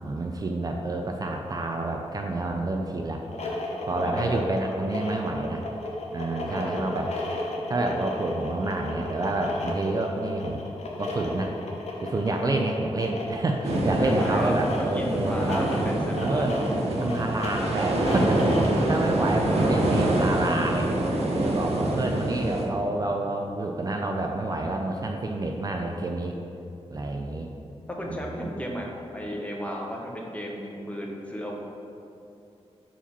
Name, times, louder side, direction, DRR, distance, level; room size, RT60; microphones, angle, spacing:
voice 1, 0.0-3.2 3.9-5.6 6.1-7.1 7.7-10.6 11.0-11.5 12.0-15.7 16.2-16.6 16.9-18.4 18.9-20.9 21.3-26.4 26.9-27.5 28.1-28.5, right 2 dB, 35° right, 2 dB, 0.4 m, -28 dB
sound 1, 3.2-18.9, left 2 dB, 85° left, 0.8 m, -34 dB
voice 2, 3.9-4.9 6.5-6.9 14.0-14.5 14.8-16.5 18.0-18.3 18.7-18.8 19.2-19.3 28.0-31.6, equal, 10° left, -1 dB, 0.8 m, -34 dB
sound 2, 13.6-22.6, right 1 dB, 80° right, 0.8 m, -25 dB
4.8 x 4.3 x 5.4 m, 2.6 s
wide cardioid pair, 135°, 11 cm